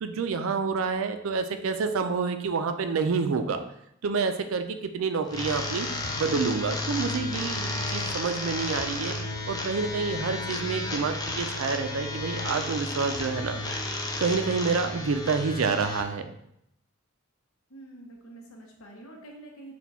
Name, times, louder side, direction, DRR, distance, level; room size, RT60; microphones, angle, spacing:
voice 1, 0.0-3.6 4.0-5.9 6.2-9.1 9.5-13.8 14.2-16.3, right 5 dB, 80° right, 8 dB, 0.4 m, -28 dB
sound 1, 5.3-16.0, left 2 dB, 20° left, 0.3 m, -32 dB
voice 2, 17.7-19.7, right 2 dB, 90° left, 1 dB, 0.9 m, -46 dB
4.2 x 2.3 x 4.2 m, 0.75 s
head